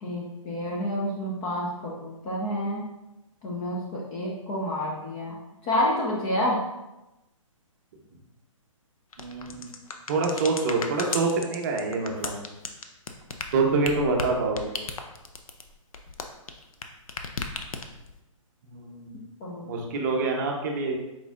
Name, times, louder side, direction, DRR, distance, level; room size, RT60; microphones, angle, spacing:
voice 1, 0.0-2.9 3.4-5.4 5.6-6.6 19.4-19.7, left 1 dB, 15° left, -4 dB, 0.3 m, -29 dB
sound 1, 9.1-16.8 17.1-18.1, left 4 dB, 85° left, 0.6 m, -35 dB
voice 2, 9.2-9.7 10.1-12.4 13.5-14.8 18.6-19.2 19.7-21.0, right 3 dB, 35° right, 1 dB, 0.7 m, -26 dB
4.5 x 3.9 x 2.4 m, 0.97 s
hypercardioid pair, 155°, 17 cm